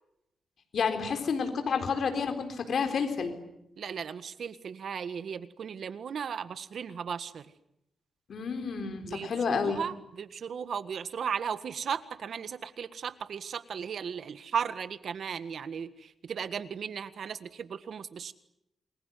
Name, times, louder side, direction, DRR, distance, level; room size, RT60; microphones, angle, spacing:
voice 1, 0.7-3.4 8.3-9.8, left 5 dB, 60° left, 6 dB, 4.2 m, -30 dB
voice 2, 3.8-7.5 9.1-18.3, right 7 dB, 65° right, 13 dB, 1.6 m, -36 dB
28.5 x 21.5 x 9.4 m, 0.82 s
cardioid pair, 100°, 0 cm